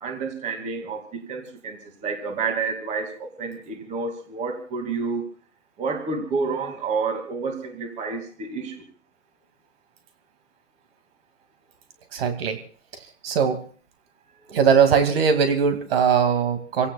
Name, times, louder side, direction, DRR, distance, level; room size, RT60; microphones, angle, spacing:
voice 1, 0.0-1.0 1.3-5.2 5.8-8.7, right 4 dB, 20° right, 5 dB, 2.3 m, -29 dB
voice 2, 12.1-12.6 13.2-13.6 14.5-16.9, right 6 dB, 50° right, 7 dB, 2.4 m, -20 dB
28.0 x 17.0 x 2.4 m, 0.41 s
hypercardioid pair, 140°, 39 cm